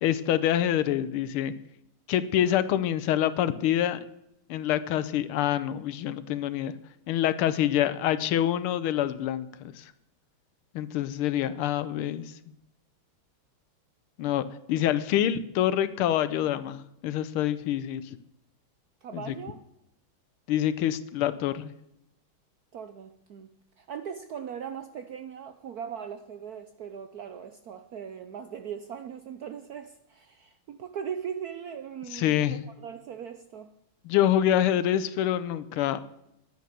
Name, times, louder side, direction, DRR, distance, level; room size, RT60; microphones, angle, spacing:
voice 1, 0.0-1.5 2.1-4.0 4.5-6.7 7.1-9.9 10.7-12.3 14.2-14.4 14.7-18.2 19.1-19.3 20.5-21.7 32.1-32.6 34.0-36.0, left 11 dB, 85° left, 14 dB, 1.6 m, -26 dB
voice 2, 19.0-19.6 22.7-23.5 23.8-33.7, right 8 dB, 70° right, 8 dB, 0.9 m, -39 dB
10.5 x 9.4 x 6.7 m, 0.82 s
omnidirectional pair, 2.3 m